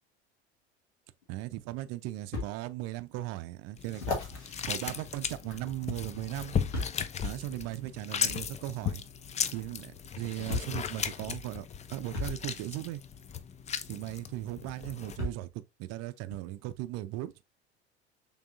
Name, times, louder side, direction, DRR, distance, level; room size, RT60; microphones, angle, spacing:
sound 1, 1.2-1.3 2.3-2.5 3.1-3.2 3.9-5.8 6.7-7.1 8.2-8.4 9.7-9.8 10.5-10.8 12.1-12.4 14.0-14.1 15.2-15.5 16.3-16.4, left 2 dB, 80° left, 1.7 m, -36 dB
voice 1, 1.3-4.0 4.7-6.6 7.2-9.0 9.5-13.0 13.9-17.4, right 15 dB, 50° right, 0.6 m, -37 dB
sound 2, 3.8-15.2, left 7 dB, 20° left, 0.5 m, -36 dB
6.0 x 3.5 x 2.5 m
figure-of-eight pair, 70°, 33 cm